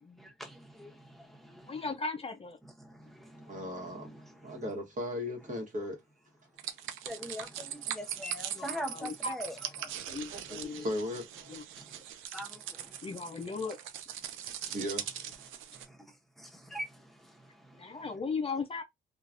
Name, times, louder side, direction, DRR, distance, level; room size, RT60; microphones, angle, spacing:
voice 1, 0.2-1.8 2.8-4.6 7.0-9.6 9.8-10.0 10.7-10.8 11.8-12.0 12.3-13.1 14.6-14.8 15.7-16.0 16.4-18.0, equal, ahead, 0.9 m, -44 dB
voice 2, 1.7-2.6 8.5-9.4 9.8-9.9 10.7-10.8 11.5-11.6 13.0-13.8 17.8-18.8, left 4 dB, 30° left, 0.5 m, -37 dB
voice 3, 3.4-4.2 4.4-6.0 10.8-11.6 14.4-15.2, left 1 dB, 40° right, 1.2 m, -37 dB
sound 1, 6.6-15.9, right 10 dB, 85° right, 0.5 m, -41 dB
3.0 x 2.3 x 2.5 m
cardioid pair, 90°, 20 cm